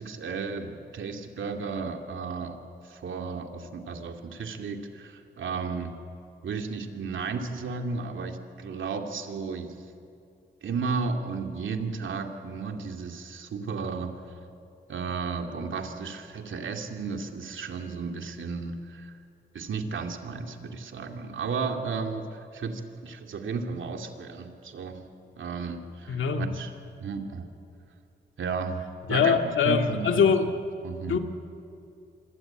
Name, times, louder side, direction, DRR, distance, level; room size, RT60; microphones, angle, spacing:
voice 1, 0.0-2.6 2.8-5.9 6.4-9.7 10.6-14.2 14.9-19.1 19.5-25.1 25.4-26.7 27.0-27.5 28.4-29.3 29.6-30.2 30.8-31.2, right 4 dB, 80° right, 4 dB, 2.6 m, -33 dB
voice 2, 26.1-26.5 29.1-30.5 31.1-31.2, left 6 dB, 85° left, 5 dB, 2.1 m, -23 dB
26.5 x 23.5 x 9.0 m, 2.6 s
cardioid pair, 70°, 20 cm